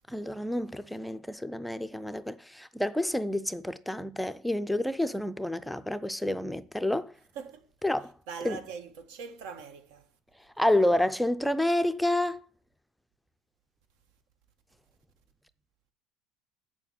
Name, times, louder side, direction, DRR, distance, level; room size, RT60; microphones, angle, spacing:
voice 1, 0.1-7.1 7.8-8.1 8.4-8.6 10.6-12.4, left 1 dB, ahead, 0.4 m, -29 dB
voice 2, 7.3-7.7 8.3-10.1, right 6 dB, 85° right, 1.6 m, -41 dB
8.1 x 7.0 x 7.2 m
cardioid pair, 155°, 0 cm